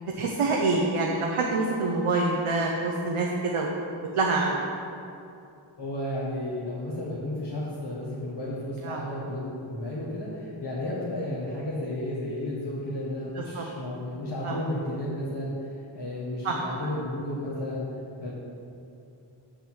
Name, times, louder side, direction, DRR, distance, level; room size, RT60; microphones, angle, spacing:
voice 1, 0.0-3.8 4.1-4.7 8.8-9.0 13.4-13.7 14.4-14.6 16.4-16.6, right 3 dB, 90° right, -1 dB, 0.9 m, -26 dB
voice 2, 5.8-17.9 18.2-18.3, left 1 dB, 50° left, -7 dB, 1.7 m, -33 dB
7.6 x 6.8 x 6.2 m, 2.6 s
wide cardioid pair, 80°, 50 cm